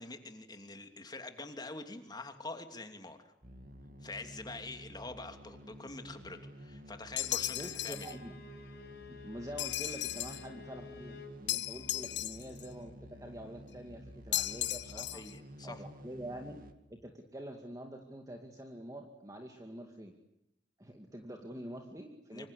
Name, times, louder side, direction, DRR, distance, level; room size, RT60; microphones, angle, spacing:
voice 1, 0.0-3.3 4.0-8.2 14.9-15.8 22.3-22.5, left 2 dB, 25° left, 6 dB, 2.9 m, -45 dB
sound 1, 3.4-16.7, equal, 50° right, 2.4 m, -52 dB
sound 2, 7.2-8.1 9.6-10.5 11.5-12.7 14.3-15.3, left 14 dB, 85° left, 1.2 m, -36 dB
Bowed string instrument, 7.3-11.4, left 5 dB, 60° left, 5.0 m, -53 dB
voice 2, 7.5-8.3 9.0-15.2 15.6-16.6 16.9-20.1 20.8-22.5, right 1 dB, 20° right, 3 dB, 2.3 m, -46 dB
26.0 x 25.5 x 8.4 m, 0.84 s
head